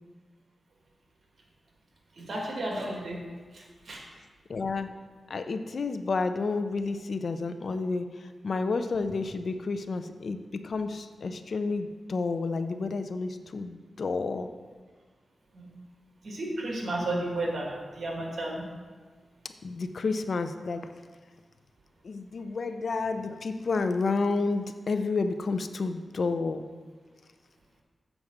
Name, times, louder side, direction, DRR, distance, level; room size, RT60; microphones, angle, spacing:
voice 1, 2.2-3.2 3.5-4.0 15.5-15.7 16.2-18.7, right 1 dB, 65° right, -1 dB, 1.8 m, -33 dB
voice 2, 4.5-4.9 5.3-8.1 8.4-14.5 19.6-20.9 22.0-26.6, left 3 dB, 65° left, 8 dB, 0.5 m, -30 dB
7.2 x 4.7 x 6.5 m, 1.5 s
cardioid pair, 70°, 0 cm